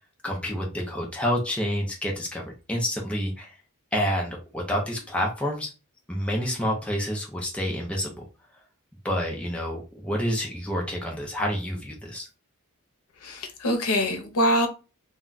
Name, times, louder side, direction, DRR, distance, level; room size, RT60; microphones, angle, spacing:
voice 1, 0.2-3.5 3.9-5.7 6.1-8.2 9.0-12.3, equal, 5° left, 0.6 m, -28 dB
voice 2, 13.2-14.7, equal, 85° left, 0.7 m, -24 dB
2.3 x 2.2 x 3.9 m
head